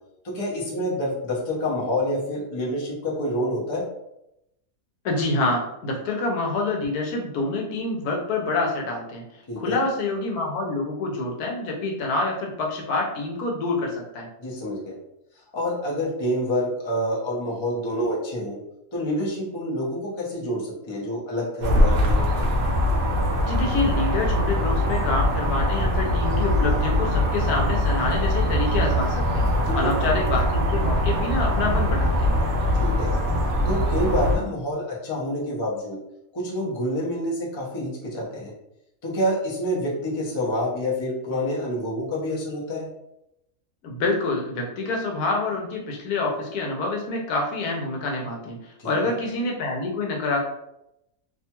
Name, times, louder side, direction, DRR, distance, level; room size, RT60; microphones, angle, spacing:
voice 1, 0.2-3.8 9.5-9.8 14.4-14.9 15.5-18.6 18.9-22.2 29.7-30.1 32.8-33.1 33.7-36.0 36.3-38.5 39.0-42.9 48.8-48.9, equal, 30° left, -5 dB, 0.5 m, -27 dB
voice 2, 5.0-9.2 9.6-14.3 23.5-29.5 29.7-32.3 43.8-50.4, left 2 dB, 85° left, 0 dB, 1.2 m, -27 dB
sound 1, 21.6-34.4, left 1 dB, 60° right, 0.6 m, -22 dB
2.8 x 2.3 x 2.8 m, 0.84 s
omnidirectional pair, 1.6 m